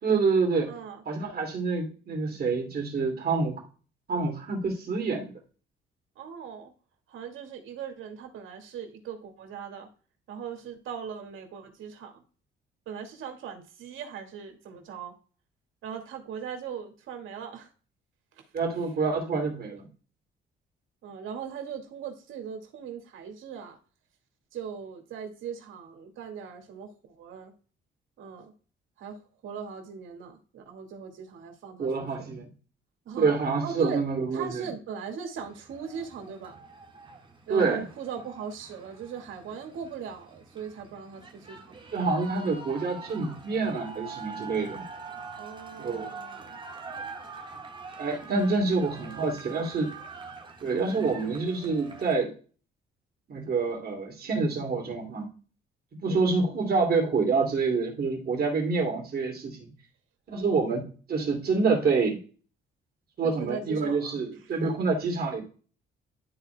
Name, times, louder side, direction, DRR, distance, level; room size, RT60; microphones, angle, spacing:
voice 1, 0.0-0.7 1.1-3.6 4.1-5.3 18.5-19.9 31.8-32.5 33.2-34.6 37.5-37.8 41.9-44.8 45.8-46.1 48.0-49.9 50.6-52.3 53.3-55.3 56.0-59.7 60.3-62.2 63.2-65.4, right 4 dB, 50° right, 1 dB, 2.8 m, -27 dB
voice 2, 0.7-1.0 6.2-6.7 7.1-9.9 10.3-12.2 12.9-15.1 15.8-17.7 18.3-18.4 19.1-19.5 21.0-23.8 24.5-27.5 28.2-28.5 29.0-29.2 29.4-31.9 32.2-32.3 33.1-34.0 34.3-36.6 37.5-41.9 45.4-46.6 49.1-49.7 56.1-56.4 63.2-64.5, right 7 dB, 80° right, 4 dB, 2.1 m, -39 dB
sound 1, 35.3-52.2, right 4 dB, 25° right, 1.6 m, -44 dB
12.5 x 4.3 x 2.3 m, 0.38 s
cardioid pair, 90°, 20 cm